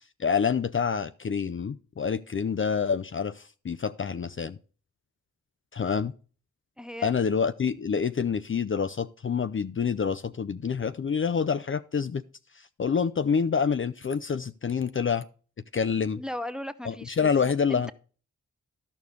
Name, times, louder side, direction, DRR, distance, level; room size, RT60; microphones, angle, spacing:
voice 1, 0.2-4.6 5.7-6.1 7.0-12.2 12.6-15.2 15.7-16.2 16.8-17.9, left 6 dB, 40° left, 0.5 m, -27 dB
voice 2, 6.8-7.1 16.2-17.3 17.7-17.9, left 1 dB, ahead, 0.7 m, -36 dB
13.0 x 4.9 x 5.2 m
cardioid pair, 50°, 31 cm